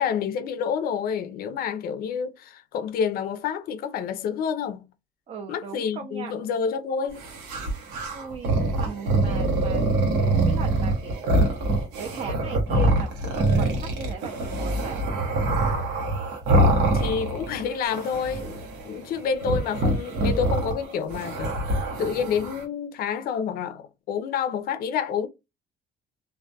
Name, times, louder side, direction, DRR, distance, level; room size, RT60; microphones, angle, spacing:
voice 1, 0.0-4.8 5.5-7.2 16.9-25.3, left 7 dB, 60° left, 0.4 m, -28 dB
voice 2, 5.3-6.3 8.1-11.4 12.0-15.0, right 6 dB, 40° right, 0.4 m, -38 dB
sound 1, 7.2-17.6 17.9-18.9 19.4-22.6, right 1 dB, 90° right, 0.8 m, -24 dB
2.2 x 2.2 x 2.7 m
cardioid pair, 110°, 17 cm